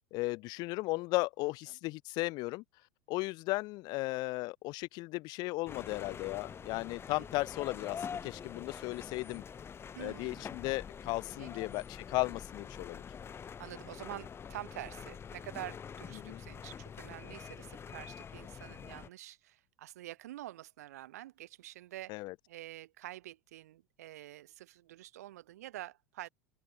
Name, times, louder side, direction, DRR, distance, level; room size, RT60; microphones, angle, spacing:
voice 1, 0.1-2.6 3.1-9.4 10.0-13.0 16.1-16.4 22.1-22.3, left 22 dB, 50° left, 1.6 m, -36 dB
sound 1, 5.7-19.1, left 7 dB, 25° left, 5.9 m, -46 dB
voice 2, 9.9-10.4 11.4-11.7 13.4-22.2 22.5-26.3, right 14 dB, 65° right, 6.0 m, -47 dB
open air
figure-of-eight pair, 75°, 9 cm